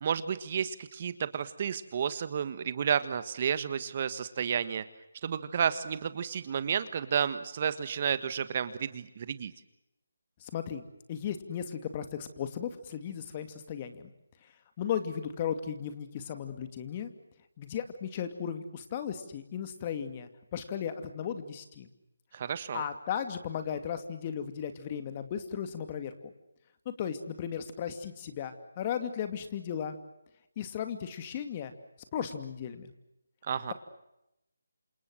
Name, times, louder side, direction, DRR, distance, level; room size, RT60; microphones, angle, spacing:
voice 1, 0.0-4.8 5.2-9.5 22.3-22.8 33.4-33.7, right 7 dB, 40° right, 13 dB, 1.5 m, -31 dB
voice 2, 10.4-10.8 11.1-14.1 14.4-17.1 17.6-21.9 22.7-26.3 26.9-30.0 30.6-31.7 32.1-32.9, left 8 dB, 30° left, 9 dB, 2.5 m, -36 dB
28.0 x 27.0 x 6.4 m, 0.86 s
figure-of-eight pair, 160°, 0 cm